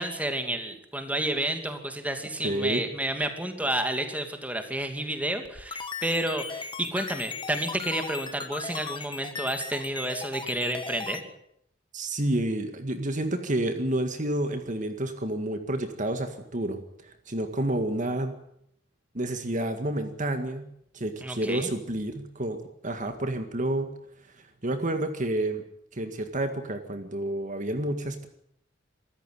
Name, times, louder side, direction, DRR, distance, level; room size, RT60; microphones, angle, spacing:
voice 1, 0.0-11.2 21.2-21.7, right 1 dB, 10° right, 6 dB, 2.6 m, -30 dB
voice 2, 2.4-2.8 11.9-18.3 19.1-20.7 20.9-22.6 22.8-23.9 24.6-25.6 25.9-28.3, right 1 dB, 40° right, 7 dB, 2.0 m, -29 dB
sound 1, 5.5-11.2, left 4 dB, 25° left, 1.7 m, -37 dB
25.5 x 14.0 x 9.3 m, 0.73 s
head